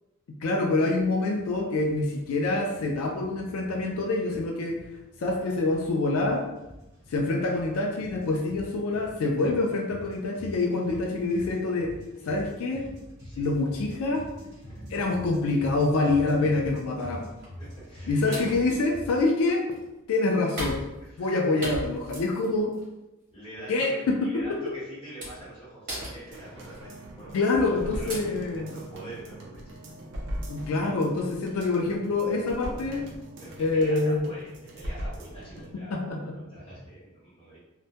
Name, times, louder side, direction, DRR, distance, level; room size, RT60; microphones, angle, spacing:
voice 1, 0.4-4.8 5.2-6.5 7.1-11.9 12.3-12.9 13.4-14.3 14.9-17.3 18.1-19.6 20.1-20.8 21.2-22.8 23.7-24.6 27.3-28.7 30.5-33.1 33.6-34.3 35.9-36.3, left 2 dB, 85° left, 1 dB, 0.3 m, -26 dB
sound 1, 0.9-19.3, equal, 15° right, 1.0 m, -46 dB
sound 2, 17.4-17.7 18.3-19.9 20.6-21.3 21.6-22.8 23.3-23.6 24.4-24.5 25.2-25.5 25.9-26.8 27.5-27.7 28.1-28.2, equal, 40° right, 1.0 m, -37 dB
voice 2, 17.6-18.5 21.0-21.5 23.3-28.2 28.5-29.6 30.8-31.0 33.4-37.6, right 1 dB, 25° left, -9 dB, 1.0 m, -44 dB
sound 3, 26.3-35.7 36.1-36.2, equal, 55° right, 0.4 m, -40 dB
2.2 x 2.1 x 2.7 m, 0.98 s
head